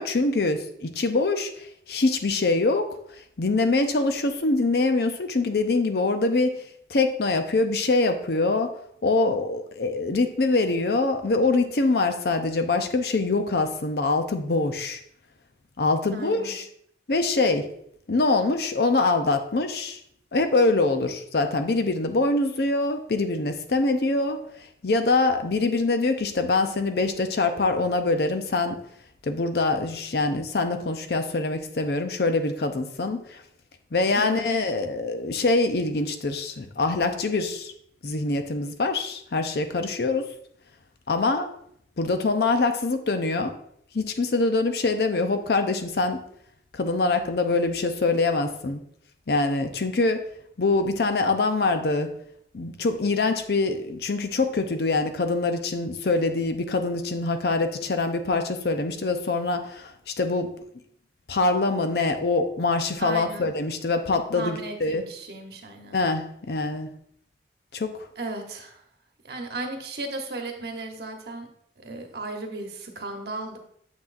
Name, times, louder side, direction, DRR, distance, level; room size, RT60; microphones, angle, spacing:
voice 1, 0.0-2.9 3.4-8.7 9.0-15.0 15.8-16.6 17.1-17.7 18.1-20.0 20.3-24.4 24.8-28.8 29.2-33.4 33.9-37.7 38.0-40.3 41.1-41.5 42.0-43.5 43.9-46.2 46.7-48.8 49.3-50.2 50.6-52.1 52.5-60.5 61.3-65.0 65.9-66.9 67.7-67.9, left 3 dB, 65° left, 7 dB, 0.6 m, -24 dB
voice 2, 16.1-16.5 34.1-34.6 63.0-63.5 64.3-66.0 68.2-68.8 69.2-71.5 71.8-73.6, right 2 dB, 65° right, 3 dB, 1.0 m, -35 dB
7.3 x 6.0 x 2.5 m, 0.69 s
head